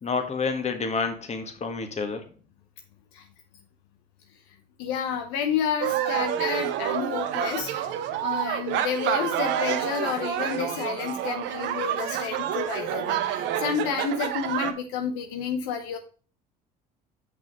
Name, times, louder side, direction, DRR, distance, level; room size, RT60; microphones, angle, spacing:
voice 1, 0.0-2.3, left 4 dB, 35° left, 7 dB, 1.7 m, -29 dB
voice 2, 4.8-7.9 8.2-16.0, left 7 dB, 75° left, 6 dB, 0.9 m, -30 dB
sound 1, 5.8-14.7, right 10 dB, 65° right, 0.9 m, -28 dB
6.2 x 5.5 x 5.3 m, 0.38 s
hypercardioid pair, 70°, 20 cm